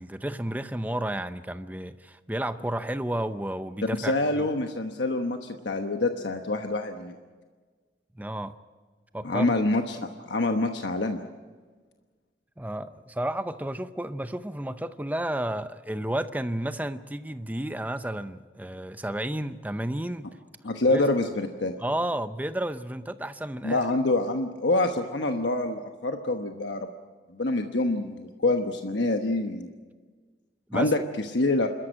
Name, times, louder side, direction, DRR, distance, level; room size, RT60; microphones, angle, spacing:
voice 1, 0.0-4.5 8.1-8.5 9.1-9.6 12.6-20.3 20.8-21.0 21.8-23.9 30.7-30.9, right 1 dB, 10° right, 11 dB, 0.6 m, -32 dB
voice 2, 4.0-7.1 9.2-11.2 20.6-21.7 23.6-26.9 27.3-29.7 30.7-31.0 31.3-31.7, left 2 dB, 85° left, 5 dB, 1.1 m, -26 dB
28.0 x 13.5 x 8.8 m, 1.4 s
head